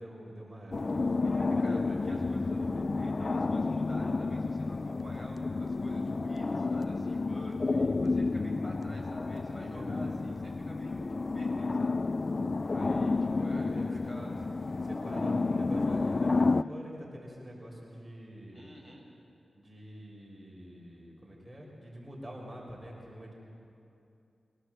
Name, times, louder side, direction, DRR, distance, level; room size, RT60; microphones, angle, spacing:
voice 1, 0.0-1.2 1.5-2.9 9.6-10.2 12.9-14.4 14.8-18.7 19.5-23.3, equal, 15° right, -3 dB, 5.7 m, -45 dB
sound 1, 0.7-16.6, left 3 dB, 45° left, 0.4 m, -30 dB
voice 2, 1.2-2.6 3.0-11.1 11.3-12.0 12.7-14.4 18.5-19.0, equal, 20° left, -2 dB, 7.1 m, -48 dB
24.5 x 18.0 x 7.8 m, 2.7 s
wide cardioid pair, 80°, 0 cm